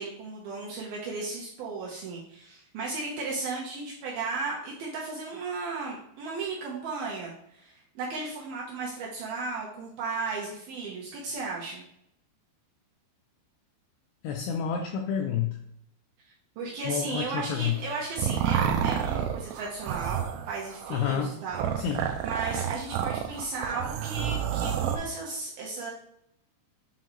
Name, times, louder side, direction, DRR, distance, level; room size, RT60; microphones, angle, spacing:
voice 1, 0.0-11.8 16.6-21.7 22.2-25.9, right 3 dB, 75° right, -3 dB, 2.3 m, -35 dB
voice 2, 14.2-15.6 16.9-17.8 20.9-21.4 21.8-22.0, left 8 dB, 90° left, 2 dB, 2.3 m, -29 dB
sound 1, 17.7-25.0, right 9 dB, 90° right, 3.0 m, -30 dB
8.0 x 3.8 x 3.0 m, 0.75 s
omnidirectional pair, 5.2 m